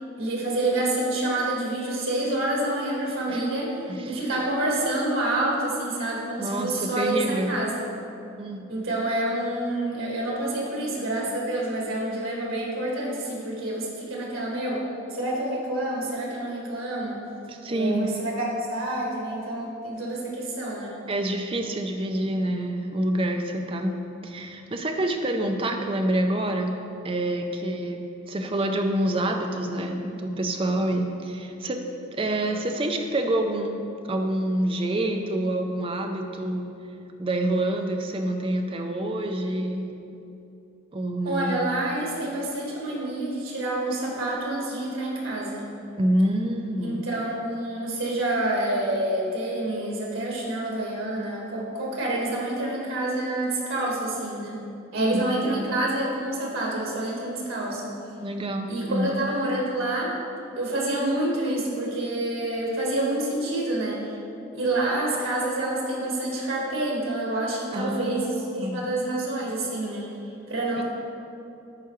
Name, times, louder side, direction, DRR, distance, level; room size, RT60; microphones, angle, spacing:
voice 1, 0.2-3.8 4.0-7.9 8.7-14.8 15.1-17.2 17.7-20.9 41.2-45.7 46.8-54.6 54.9-57.9 58.7-60.1 60.5-64.2 64.5-70.1 70.5-70.8, right 1 dB, 85° right, -3 dB, 1.6 m, -28 dB
voice 2, 3.9-4.2 6.4-7.5 8.4-8.9 17.5-18.3 21.1-23.9 24.2-26.8 27.0-28.0 28.3-31.8 32.1-33.8 34.1-36.7 37.2-39.9 40.9-41.6 46.0-47.0 55.0-55.6 58.2-59.2 67.7-68.8 70.8-70.9, right 1 dB, 25° right, 4 dB, 0.5 m, -27 dB
11.5 x 4.7 x 3.1 m, 2.7 s
head